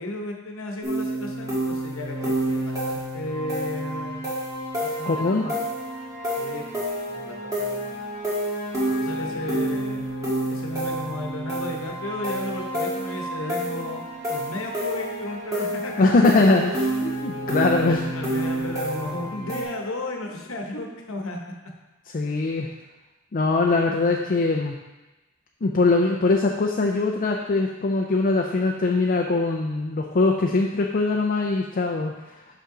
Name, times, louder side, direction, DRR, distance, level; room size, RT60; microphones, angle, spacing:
voice 1, 0.0-4.3 4.8-5.7 6.4-6.8 7.1-7.9 9.0-10.1 10.5-14.0 14.3-16.2 17.7-21.5, left 2 dB, 80° left, 1 dB, 1.0 m, -34 dB
sound 1, 0.8-19.6, right 1 dB, 15° right, 1.7 m, -29 dB
voice 2, 5.1-5.5 16.0-16.7 17.0-18.0 22.1-22.7 23.3-24.8 25.6-32.3, left 3 dB, 45° left, 0 dB, 0.4 m, -22 dB
6.1 x 5.5 x 3.8 m, 1.1 s
head